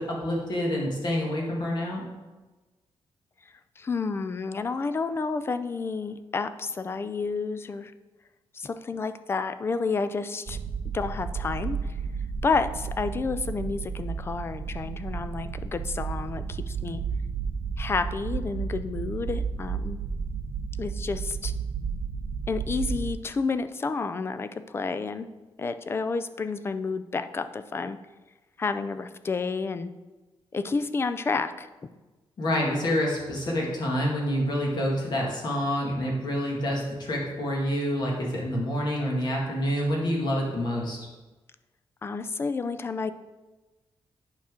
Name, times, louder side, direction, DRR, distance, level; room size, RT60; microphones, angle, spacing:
voice 1, 0.0-2.0 32.4-41.0, equal, 50° left, -2 dB, 1.9 m, -27 dB
voice 2, 3.8-7.9 8.5-10.6 10.9-11.8 12.4-17.0 17.8-20.0 20.8-21.5 22.5-25.3 25.6-28.0 28.6-29.9 30.5-31.7 42.0-43.1, left 4 dB, 25° left, 11 dB, 0.3 m, -30 dB
sound 1, 10.5-23.1, right 6 dB, 45° right, 0.5 m, -32 dB
8.8 x 5.7 x 3.7 m, 1.2 s
wide cardioid pair, 170°, 9 cm